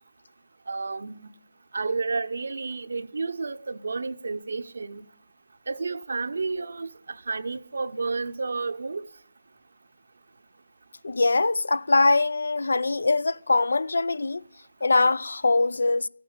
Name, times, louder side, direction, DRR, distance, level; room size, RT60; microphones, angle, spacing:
voice 1, 0.7-1.3 1.7-5.1 5.7-9.1, right 4 dB, 70° right, 0.8 m, -31 dB
voice 2, 11.0-14.4 14.8-16.1, left 3 dB, 80° left, 0.5 m, -22 dB
14.5 x 8.8 x 7.2 m
hypercardioid pair, 165°, 0 cm